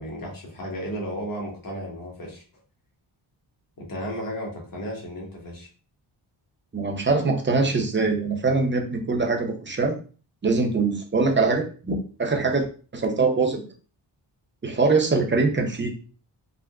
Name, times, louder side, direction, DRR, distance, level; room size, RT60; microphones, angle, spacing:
voice 1, 0.0-2.4 3.8-5.7, equal, 45° left, -2 dB, 1.2 m, -34 dB
voice 2, 6.7-10.0 10.4-12.7 12.9-13.6 14.6-15.9, right 3 dB, 25° right, 3 dB, 0.6 m, -23 dB
3.6 x 2.1 x 2.3 m, 0.38 s
cardioid pair, 75°, 48 cm